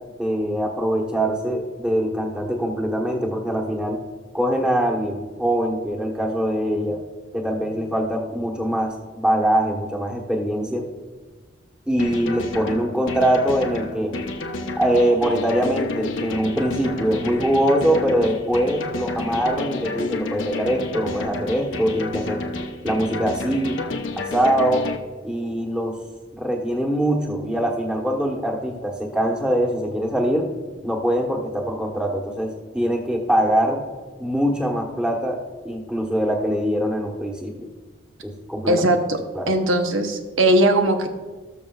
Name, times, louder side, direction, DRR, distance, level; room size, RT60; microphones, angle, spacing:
voice 1, 0.2-4.0 4.3-7.0 7.3-10.9 11.9-14.1 14.8-22.4 22.8-23.8 24.2-24.8 25.2-26.0 26.4-30.5 30.8-33.8 34.2-35.4 35.6-37.7 38.2-38.8 39.3-39.6, equal, 5° right, 0 dB, 1.1 m, -23 dB
sound 1, 12.0-25.0, left 2 dB, 75° left, 0.8 m, -30 dB
voice 2, 38.7-39.2 39.5-41.1, right 1 dB, 85° right, 5 dB, 0.9 m, -19 dB
18.0 x 6.8 x 2.4 m, 1.3 s
head